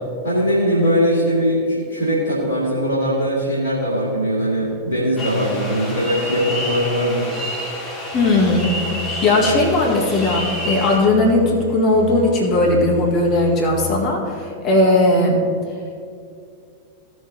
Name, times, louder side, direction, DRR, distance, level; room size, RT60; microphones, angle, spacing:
voice 1, 0.2-7.3 9.4-9.5, equal, 80° right, -10 dB, 2.1 m, -20 dB
sound 1, 5.2-11.0, left 1 dB, 20° left, 2.1 m, -29 dB
voice 2, 8.1-8.8 9.2-15.4, left 2 dB, 35° left, -1 dB, 1.8 m, -17 dB
sound 2, 8.1-14.1, left 6 dB, 5° left, 2.3 m, -33 dB
16.0 x 6.4 x 2.9 m, 2.3 s
figure-of-eight pair, 90°, 0 cm